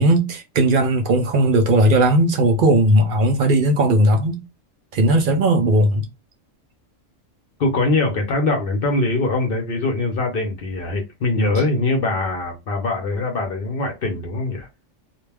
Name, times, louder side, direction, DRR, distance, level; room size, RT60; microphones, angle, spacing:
voice 1, 0.0-4.4 4.9-6.1, right 1 dB, 55° right, 0.6 m, -17 dB
voice 2, 7.6-14.7, left 2 dB, 55° left, 0.7 m, -22 dB
2.3 x 2.2 x 3.3 m
omnidirectional pair, 1.3 m